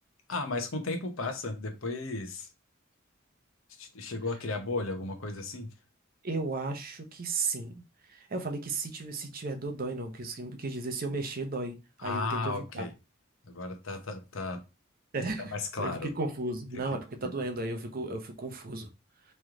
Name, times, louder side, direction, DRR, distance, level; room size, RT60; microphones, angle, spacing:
voice 1, 0.3-2.5 3.8-5.7 12.0-12.9 13.4-14.6 15.5-16.1 17.2-17.3, left 3 dB, 75° left, 0.9 m, -34 dB
voice 2, 6.2-7.8 8.1-12.8 15.1-18.9, right 3 dB, 45° right, 0.7 m, -34 dB
3.2 x 3.1 x 3.6 m
head